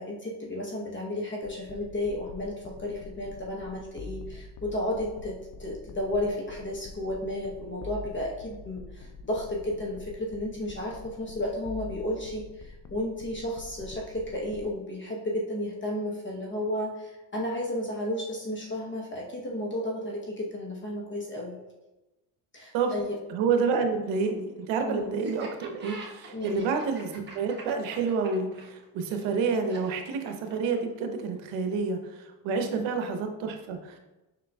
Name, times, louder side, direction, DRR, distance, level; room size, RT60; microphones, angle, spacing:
voice 1, 0.0-21.6 22.5-23.2 24.8-25.1 26.3-26.6 32.7-32.9, left 1 dB, 25° left, -2 dB, 0.9 m, -33 dB
sound 1, 1.4-14.7, left 3 dB, 40° left, 0.4 m, -46 dB
voice 2, 23.3-34.0, right 5 dB, 80° right, 5 dB, 0.8 m, -29 dB
Laughter, 25.2-31.0, right 2 dB, 25° right, 1.0 m, -44 dB
5.4 x 3.7 x 2.3 m, 1.0 s
supercardioid pair, 90°, 45 cm